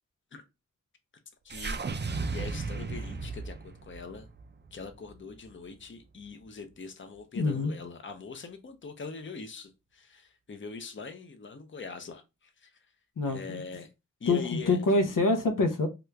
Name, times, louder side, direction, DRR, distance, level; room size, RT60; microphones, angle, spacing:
voice 1, 1.4-4.3 4.7-12.8 13.3-13.9 14.2-14.8, left 4 dB, 40° left, 0.6 m, -43 dB
sound 1, 1.5-5.8, right 4 dB, 35° right, 0.4 m, -36 dB
voice 2, 7.4-7.7 13.2-13.6 14.3-15.9, left 2 dB, 90° left, 0.6 m, -26 dB
2.9 x 2.4 x 3.2 m
wide cardioid pair, 70°, 31 cm